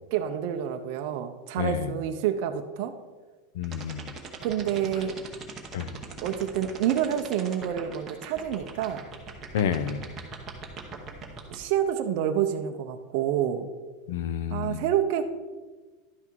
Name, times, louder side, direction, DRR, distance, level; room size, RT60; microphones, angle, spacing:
voice 1, 0.1-2.9 4.4-5.2 6.2-9.1 11.5-13.7 14.5-15.2, right 10 dB, 45° right, 5 dB, 0.6 m, -28 dB
voice 2, 1.6-1.9 3.6-4.0 5.7-5.9 9.5-10.0 14.1-14.8, left 8 dB, 65° left, 13 dB, 0.6 m, -29 dB
sound 1, 3.6-11.5, right 5 dB, 15° right, 0.9 m, -39 dB
11.5 x 6.0 x 4.6 m, 1.3 s
supercardioid pair, 180°, 0 cm